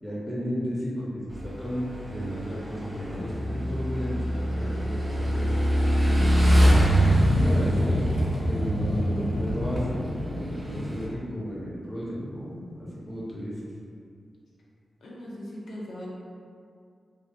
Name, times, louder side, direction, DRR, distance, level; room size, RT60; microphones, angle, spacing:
voice 1, 0.0-5.5 7.0-8.0 8.5-13.6, equal, 10° left, -7 dB, 0.6 m, -34 dB
Motorcycle / Engine, 1.3-11.1, equal, 45° right, 0.6 m, -24 dB
voice 2, 7.2-7.8 8.7-9.4 15.0-16.1, left 1 dB, 85° left, -5 dB, 0.4 m, -38 dB
2.4 x 2.2 x 2.5 m, 2.4 s
wide cardioid pair, 100°, 0 cm